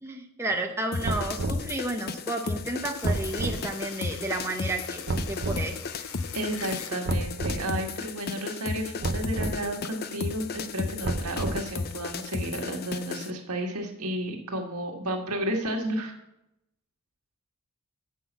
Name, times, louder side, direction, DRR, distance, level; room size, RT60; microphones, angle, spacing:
voice 1, 0.0-6.1, right 2 dB, 10° right, 1 dB, 0.8 m, -32 dB
sound 1, 0.9-13.3, left 4 dB, 45° left, 0.5 m, -35 dB
sound 2, 1.0-1.7 3.0-3.6 5.1-5.6 7.1-7.6 9.0-9.6 11.0-11.8, right 2 dB, 50° right, 0.7 m, -30 dB
sound 3, 3.0-7.0, left 7 dB, 70° left, 0.8 m, -44 dB
voice 2, 6.3-16.2, right 1 dB, 80° right, 2 dB, 1.6 m, -32 dB
8.0 x 5.6 x 7.1 m, 0.84 s
head